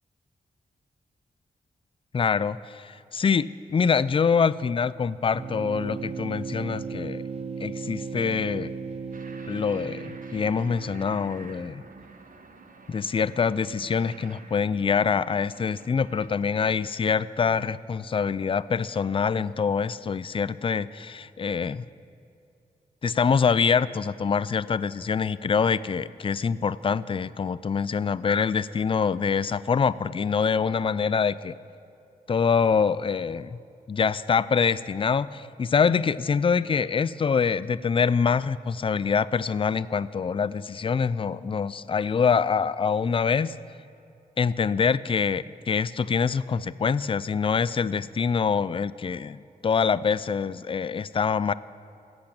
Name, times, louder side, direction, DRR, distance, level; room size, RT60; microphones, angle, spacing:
voice 1, 2.1-7.2 7.6-8.7 9.5-11.8 12.9-21.9 23.0-31.6 32.3-33.6 33.9-43.5 44.4-51.5, left 6 dB, 35° left, 17 dB, 0.3 m, -25 dB
sound 1, 5.3-12.0, right 5 dB, 40° right, 0.7 m, -36 dB
sound 2, 9.1-16.3, right 4 dB, 60° right, 1.0 m, -48 dB
14.5 x 8.0 x 8.6 m, 2.6 s
wide cardioid pair, 100°, 16 cm